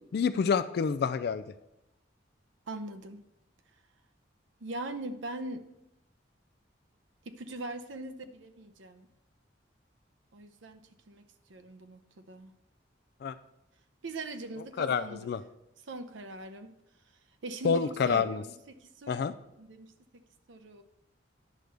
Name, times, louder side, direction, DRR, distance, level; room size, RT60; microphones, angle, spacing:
voice 1, 0.1-1.4 13.2-13.3 14.8-15.4 17.6-18.4 19.1-19.3, left 6 dB, 55° left, 13 dB, 0.3 m, -28 dB
voice 2, 2.7-3.2 4.6-5.6 7.3-9.1 10.3-11.2 11.5-12.0 12.3-12.5 14.0-15.3 15.9-16.8 17.4-18.5 18.8-19.3 19.6-20.2 20.5-20.8, right 2 dB, 85° right, 8 dB, 0.7 m, -41 dB
10.5 x 6.4 x 3.4 m, 0.88 s
head